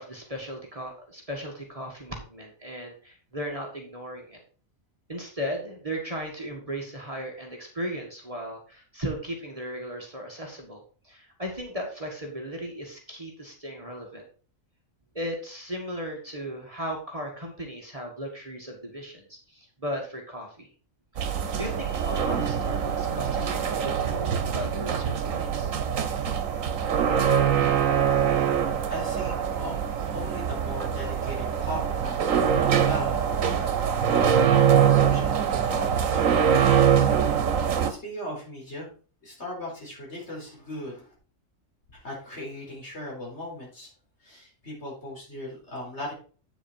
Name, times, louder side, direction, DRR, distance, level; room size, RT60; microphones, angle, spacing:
voice 1, 0.0-4.4 5.1-14.2 15.2-20.7 21.1-25.7, equal, 25° right, 1 dB, 1.9 m, -36 dB
sound 1, 21.2-37.9, right 8 dB, 85° right, 1.4 m, -24 dB
voice 2, 28.9-29.7 30.0-32.3 32.6-33.2 33.5-34.6 34.9-37.1 37.9-38.9 39.2-41.1 42.0-43.9 44.2-46.1, left 1 dB, 55° left, -3 dB, 4.5 m, -38 dB
8.7 x 7.1 x 4.5 m, 0.39 s
omnidirectional pair, 1.4 m